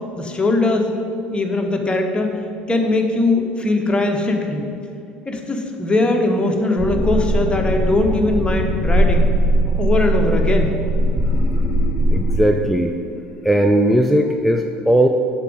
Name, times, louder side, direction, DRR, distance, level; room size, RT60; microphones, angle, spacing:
voice 1, 0.2-0.9 1.3-2.3 2.7-4.6 5.3-9.3 9.8-10.7, left 2 dB, 15° left, 2 dB, 1.2 m, -20 dB
sound 1, 6.8-12.5, right 1 dB, 30° right, 1.7 m, -19 dB
sound 2, 9.3-14.1, left 2 dB, 60° left, 0.9 m, -39 dB
voice 2, 12.1-12.9 13.4-15.1, right 1 dB, ahead, 2 dB, 0.5 m, -17 dB
8.1 x 6.1 x 5.5 m, 2.6 s
figure-of-eight pair, 65°, 6 cm